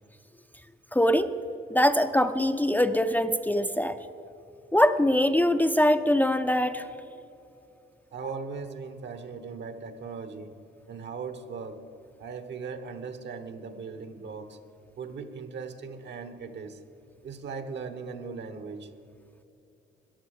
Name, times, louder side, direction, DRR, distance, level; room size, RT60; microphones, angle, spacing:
voice 1, 0.9-1.3 1.7-4.0 4.7-6.8, left 1 dB, 10° left, 8 dB, 0.5 m, -23 dB
voice 2, 8.1-10.5 10.9-11.8 12.2-14.6 15.0-16.8 17.2-18.9, right 5 dB, 60° right, 10 dB, 1.2 m, -38 dB
14.0 x 10.5 x 6.6 m, 2.7 s
cardioid pair, 90°, 20 cm